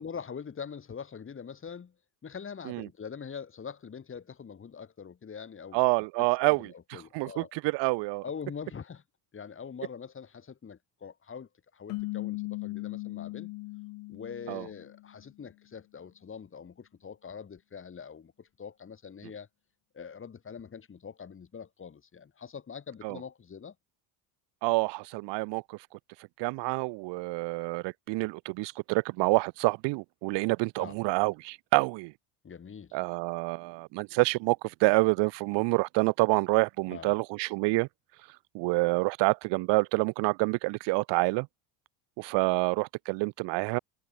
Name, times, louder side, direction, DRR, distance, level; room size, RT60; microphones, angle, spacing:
voice 1, 0.0-1.9 2.2-5.8 6.4-7.5 8.2-9.0 9.3-13.5 14.1-19.5 19.9-23.7 30.8-30.9 32.4-33.0 36.9-37.2, left 6 dB, 30° left, 4.2 m, -43 dB
voice 2, 5.7-6.7 7.1-8.2 14.5-14.7 23.0-23.2 24.6-25.8 26.4-32.1 32.9-37.9 38.5-41.5 42.2-43.8, right 26 dB, 75° right, 0.8 m, -27 dB
sound 1, 11.9-15.2, left 22 dB, 70° left, 1.2 m, -38 dB
cardioid pair, 120°, 43 cm